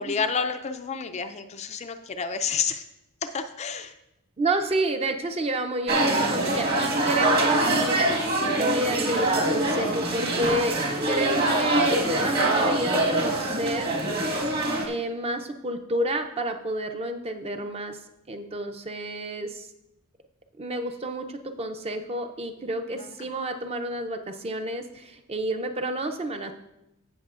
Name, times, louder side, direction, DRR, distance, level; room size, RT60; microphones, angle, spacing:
voice 1, 0.0-2.8 3.2-3.9 23.0-23.1, left 6 dB, 30° left, 8 dB, 0.4 m, -29 dB
voice 2, 4.4-8.0 8.3-10.8 11.1-14.0 14.9-18.0 18.3-19.7 20.6-26.5, right 1 dB, 25° right, 6 dB, 0.5 m, -30 dB
sound 1, 5.9-14.9, right 2 dB, 45° right, 1.5 m, -24 dB
16.0 x 6.2 x 2.5 m, 0.89 s
head